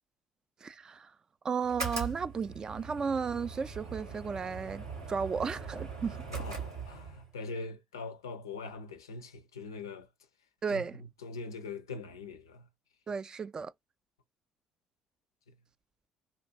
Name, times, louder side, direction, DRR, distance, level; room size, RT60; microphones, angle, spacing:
voice 1, 0.6-1.1 1.4-6.2 10.6-11.0 13.1-13.7, right 5 dB, 35° right, 0.3 m, -34 dB
sound 1, 1.6-7.3, right 5 dB, 85° right, 1.0 m, -41 dB
voice 2, 6.3-10.1 10.7-10.8 11.2-12.7, left 3 dB, 80° left, 0.4 m, -42 dB
2.5 x 2.3 x 2.6 m
figure-of-eight pair, 50°, 2 cm